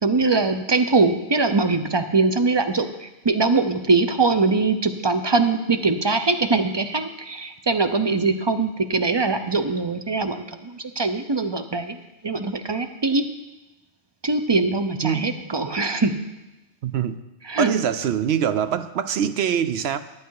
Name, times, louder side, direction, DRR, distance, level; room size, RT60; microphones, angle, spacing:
voice 1, 0.0-12.0 12.2-13.2 14.2-16.1 17.4-17.7, right 3 dB, 35° right, 8 dB, 0.4 m, -22 dB
voice 2, 15.0-15.4 16.8-17.2 17.6-20.0, right 8 dB, 70° right, 12 dB, 0.8 m, -24 dB
10.5 x 10.5 x 4.7 m, 1.0 s
omnidirectional pair, 1.2 m